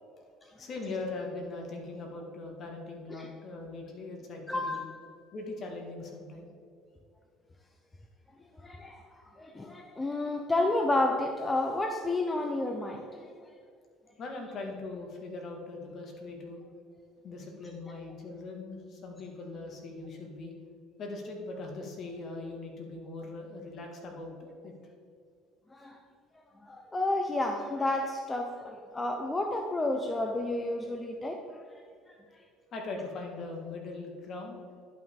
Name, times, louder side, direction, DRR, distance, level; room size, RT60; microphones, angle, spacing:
voice 1, 0.6-4.8 5.3-6.5 14.2-16.6 17.2-20.5 21.0-24.7 32.7-34.6, left 3 dB, 50° left, 1 dB, 1.9 m, -40 dB
voice 2, 4.5-4.9 8.6-9.0 9.4-13.2 25.7-26.0 26.6-31.4, left 2 dB, 20° left, 4 dB, 0.7 m, -31 dB
11.0 x 5.7 x 3.7 m, 2.3 s
supercardioid pair, 90°, 0 cm